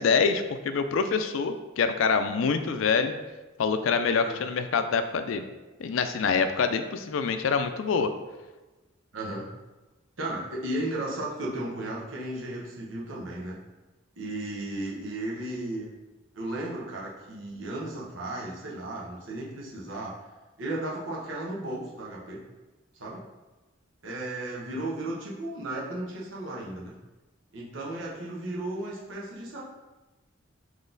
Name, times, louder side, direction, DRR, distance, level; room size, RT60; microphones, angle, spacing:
voice 1, 0.0-3.1 3.6-5.4 5.8-8.1, left 5 dB, 85° left, 9 dB, 0.4 m, -25 dB
voice 2, 9.1-9.5 10.2-13.6 14.2-15.9 16.3-20.1 20.6-22.4 23.0-23.2 24.0-26.9 27.5-29.6, right 1 dB, 80° right, -4 dB, 1.1 m, -34 dB
4.0 x 3.1 x 3.8 m, 1.1 s
head